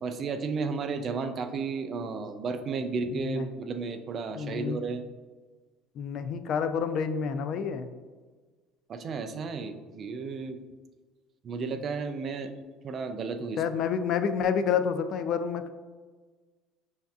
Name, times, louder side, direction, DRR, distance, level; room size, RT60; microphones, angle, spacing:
voice 1, 0.0-5.0 8.9-10.6 11.4-12.5 12.8-13.6, right 4 dB, 35° right, 8 dB, 0.3 m, -33 dB
voice 2, 3.1-3.5 4.4-4.8 6.0-7.9 13.6-15.7, left 7 dB, 50° left, 10 dB, 0.3 m, -29 dB
6.3 x 2.6 x 2.3 m, 1.4 s
cardioid pair, 130°, 0 cm